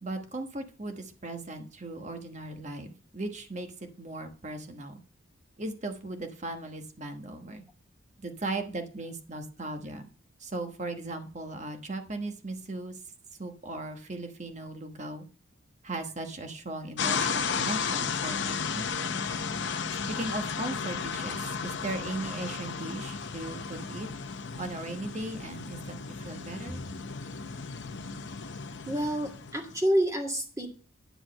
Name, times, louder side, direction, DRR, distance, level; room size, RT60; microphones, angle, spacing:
voice 1, 0.0-3.7 4.0-5.0 5.6-7.6 8.2-10.0 10.4-13.0 13.4-15.3 15.8-19.1 20.1-24.1 24.6-26.8, right 2 dB, 35° right, 6 dB, 1.2 m, -37 dB
sound 1, 17.0-29.8, left 5 dB, 60° left, 0.7 m, -34 dB
voice 2, 28.9-30.7, equal, 15° right, 1 dB, 1.9 m, -28 dB
10.0 x 4.6 x 7.6 m, 0.40 s
head